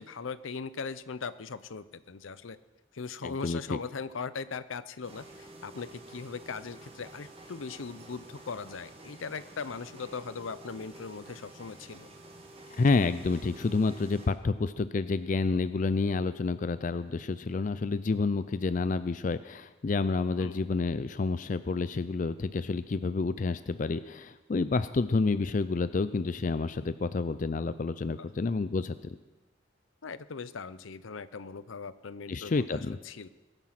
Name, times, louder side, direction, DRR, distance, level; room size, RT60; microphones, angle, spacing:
voice 1, 0.0-2.6 2.9-12.1 20.4-20.8 28.2-28.3 30.0-33.3, left 5 dB, 80° left, 15 dB, 0.7 m, -39 dB
voice 2, 3.2-3.8 12.7-29.2 32.3-33.0, left 3 dB, 40° left, 13 dB, 0.4 m, -29 dB
sound 1, 5.0-14.3, right 2 dB, 30° right, 1.8 m, -50 dB
21.5 x 9.0 x 5.9 m, 1.2 s
head